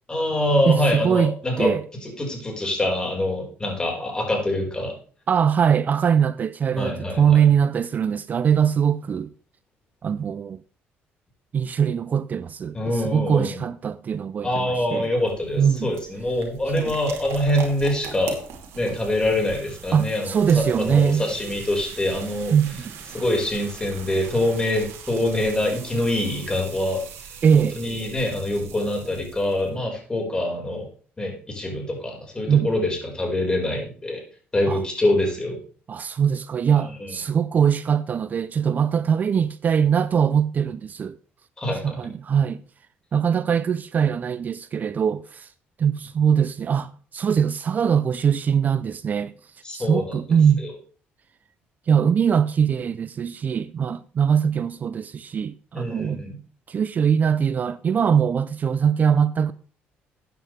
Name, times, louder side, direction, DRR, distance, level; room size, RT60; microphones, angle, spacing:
voice 1, 0.1-1.7 2.0-4.9 6.7-7.4 12.7-13.6 14.4-18.4 18.7-22.5 23.1-27.0 27.6-30.9 31.2-34.2 34.5-35.6 37.0-37.2 41.6-42.0 49.6-50.2 55.7-56.3, left 1 dB, 20° left, 4.8 m, -25 dB
voice 2, 0.6-1.8 5.3-9.3 10.0-10.6 11.5-15.1 15.6-15.9 16.8-17.0 19.9-21.3 22.5-22.9 27.4-27.8 32.5-32.9 34.7-34.8 35.9-41.2 41.8-42.6 43.1-45.5 45.8-49.3 49.7-50.7 51.9-56.2 56.7-59.5, right 7 dB, 40° right, 0.4 m, -22 dB
sound 1, 14.9-29.7, right 7 dB, 80° right, 2.6 m, -41 dB
13.5 x 9.2 x 3.3 m
cardioid pair, 110°, 4 cm